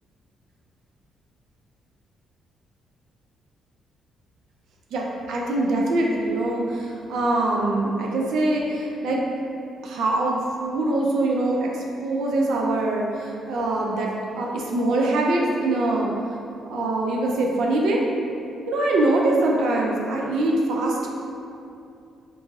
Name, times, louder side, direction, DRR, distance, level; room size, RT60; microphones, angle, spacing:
voice 1, 4.9-9.2 9.8-16.1 16.7-18.0 18.7-21.1, right 2 dB, 80° right, -2 dB, 0.3 m, -23 dB
3.0 x 2.5 x 2.3 m, 2.6 s
cardioid pair, 90°, 0 cm